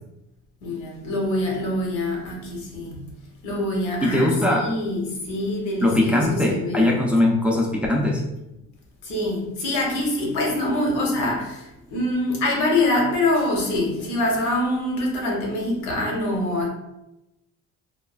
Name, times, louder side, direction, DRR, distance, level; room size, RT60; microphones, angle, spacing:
voice 1, 0.6-3.1 3.4-6.8 9.0-16.7, left 1 dB, 90° left, 0.9 m, -25 dB
voice 2, 4.0-4.7 5.8-8.2, left 1 dB, 5° right, 0.3 m, -20 dB
3.1 x 2.3 x 2.3 m
cardioid pair, 120°, 30 cm